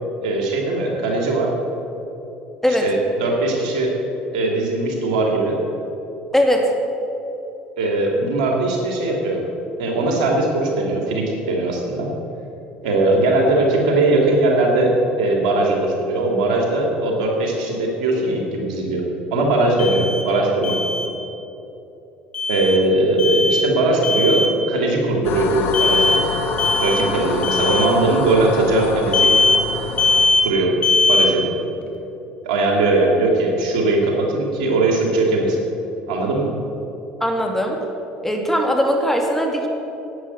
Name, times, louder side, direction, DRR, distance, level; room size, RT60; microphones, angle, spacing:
voice 1, 0.2-1.5 2.8-3.9 4.3-5.6 7.8-9.4 9.8-12.1 12.8-19.0 19.3-20.8 22.5-26.2 26.8-29.4 30.4-30.7 31.1-31.5 32.4-35.6 36.1-36.5, right 2 dB, 85° right, 0 dB, 2.8 m, -19 dB
voice 2, 6.3-6.7 37.2-37.8 38.2-39.7, equal, 5° left, 2 dB, 2.3 m, -19 dB
Alarm, 19.8-20.2 20.6-21.1 22.3-22.8 23.2-23.7 24.0-24.5 25.7-26.2 26.6-27.1 27.4-27.9 29.1-29.6 30.0-30.5 30.8-31.3, left 3 dB, 25° left, 2.1 m, -19 dB
sound 1, 25.2-30.3, left 4 dB, 55° left, 1.6 m, -27 dB
11.5 x 9.4 x 7.9 m, 3.0 s
supercardioid pair, 85°, 4 cm